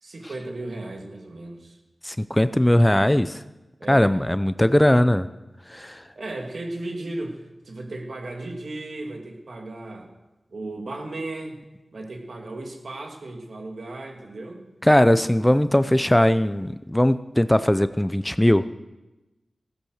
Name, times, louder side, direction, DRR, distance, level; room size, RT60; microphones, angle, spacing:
voice 1, 0.0-1.8 3.8-4.2 6.2-10.1 10.5-11.6 11.9-14.6, right 2 dB, 75° right, 2 dB, 2.4 m, -35 dB
voice 2, 2.0-3.4 3.9-5.3 5.7-6.0 14.8-18.6, left 1 dB, 10° left, 13 dB, 0.6 m, -19 dB
15.0 x 10.5 x 6.5 m, 1.0 s
cardioid pair, 50°, 0 cm